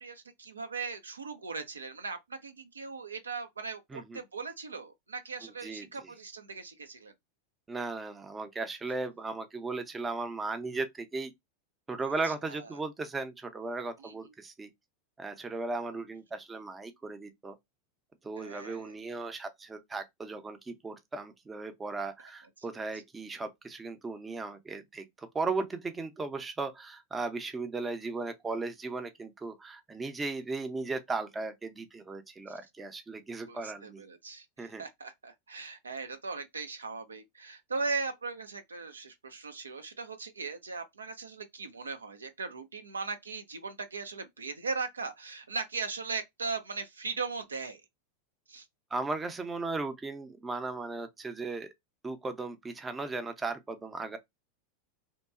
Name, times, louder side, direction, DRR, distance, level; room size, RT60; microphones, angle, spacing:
voice 1, 0.0-7.1 12.2-12.7 14.0-14.1 15.8-16.0 18.4-18.9 22.7-22.8 33.5-47.8 48.5-48.7, right 4 dB, 85° right, 0.4 m, -39 dB
voice 2, 7.7-11.3 11.9-14.7 15.2-17.6 18.2-34.0 34.6-34.8 48.9-51.7 52.0-54.2, right 3 dB, 15° right, 0.5 m, -36 dB
2.8 x 2.2 x 2.3 m
figure-of-eight pair, 90°, 0 cm